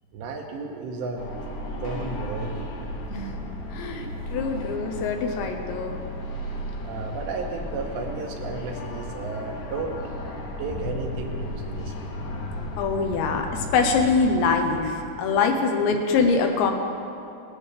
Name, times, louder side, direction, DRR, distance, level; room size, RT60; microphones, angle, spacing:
voice 1, 0.1-1.2 1.7-2.7 6.8-10.0 10.6-12.1 15.2-15.3, right 3 dB, 80° right, 2 dB, 2.8 m, -33 dB
sound 1, 1.1-14.7, left 1 dB, 60° left, 2.3 m, -34 dB
voice 2, 3.7-6.0 12.8-16.7, left 4 dB, 80° left, 3 dB, 2.9 m, -24 dB
18.5 x 14.0 x 3.3 m, 2.6 s
omnidirectional pair, 5.5 m